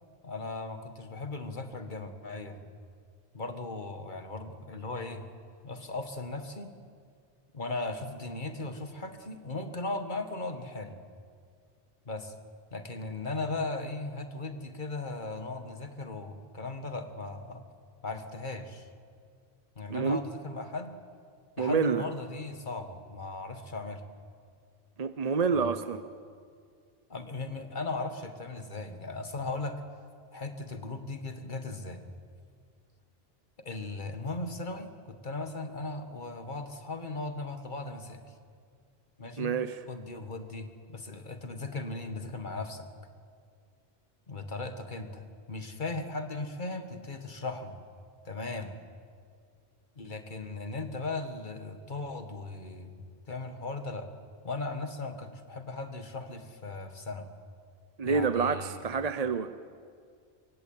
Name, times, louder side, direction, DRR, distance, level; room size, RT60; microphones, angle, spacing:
voice 1, 0.2-2.6 3.3-5.2 5.6-6.7 7.5-11.0 12.1-12.3 12.7-17.6 18.0-18.9 19.8-21.0 21.6-24.0 25.5-25.7 27.1-29.8 30.3-32.0 33.6-38.3 39.2-39.6 39.9-42.9 44.3-47.8 48.3-48.7 50.0-54.1 54.4-57.3 58.0-58.8, left 3 dB, 50° left, 7 dB, 2.0 m, -37 dB
voice 2, 19.9-20.2 21.6-22.0 25.0-26.0 39.4-39.8 58.0-59.5, right 5 dB, 40° right, 12 dB, 0.8 m, -28 dB
25.0 x 23.0 x 8.9 m, 2.2 s
omnidirectional pair, 1.1 m